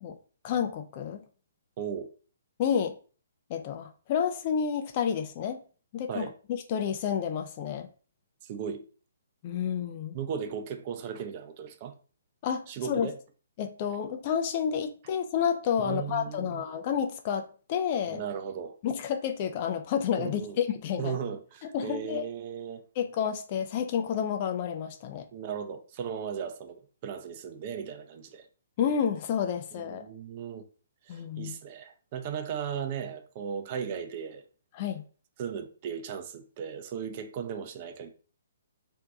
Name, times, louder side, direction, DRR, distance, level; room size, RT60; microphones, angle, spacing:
voice 1, 0.4-1.2 2.6-3.0 3.5-5.6 5.9-6.3 6.7-7.9 9.4-10.2 12.4-13.1 13.6-18.2 18.8-21.2 21.7-22.2 23.0-25.3 28.8-30.1 31.1-31.6 34.7-35.0, left 8 dB, 35° left, 0.4 m, -30 dB
voice 2, 1.8-2.1 6.1-6.3 8.4-8.8 10.1-11.9 12.7-13.1 15.8-16.6 18.1-18.7 20.2-20.6 21.0-22.8 25.3-28.4 29.8-30.6 31.1-34.4 35.4-38.1, right 7 dB, 35° right, 0.4 m, -36 dB
2.6 x 2.2 x 3.6 m
figure-of-eight pair, 130°, 0 cm